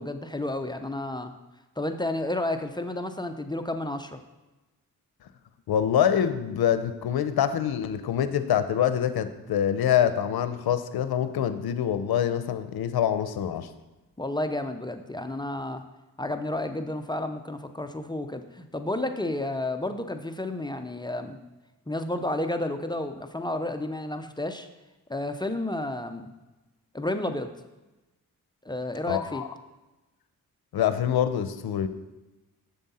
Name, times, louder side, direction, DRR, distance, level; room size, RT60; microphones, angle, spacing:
voice 1, 0.0-1.3 1.8-4.2 14.2-15.8 16.2-21.4 21.9-24.7 25.1-26.3 26.9-27.5 28.6-29.4, left 1 dB, 10° left, 7 dB, 0.5 m, -31 dB
voice 2, 5.7-13.7 29.1-29.5 30.7-31.9, left 9 dB, 80° left, 11 dB, 0.6 m, -25 dB
7.4 x 7.0 x 4.2 m, 1.1 s
cardioid pair, 80°, 37 cm